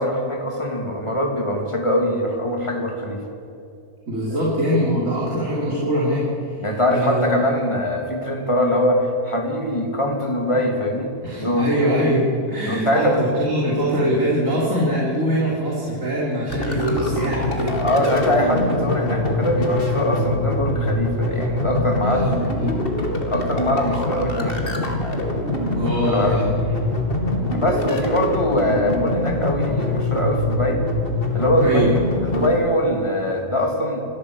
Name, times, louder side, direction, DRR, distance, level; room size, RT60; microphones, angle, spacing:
voice 1, 0.0-3.2 6.6-11.1 11.4-11.7 12.6-13.2 17.7-22.3 23.3-24.9 25.9-26.4 27.5-30.8 31.3-31.9 32.2-34.0, left 1 dB, 20° left, 2 dB, 3.2 m, -22 dB
voice 2, 4.1-7.4 11.2-17.8 22.0-22.8 25.7-26.5 31.6-31.9, equal, 55° right, -5 dB, 3.8 m, -23 dB
sound 1, 16.5-32.5, left 2 dB, 35° left, 2.8 m, -24 dB
27.5 x 13.5 x 8.3 m, 2.7 s
omnidirectional pair, 1.6 m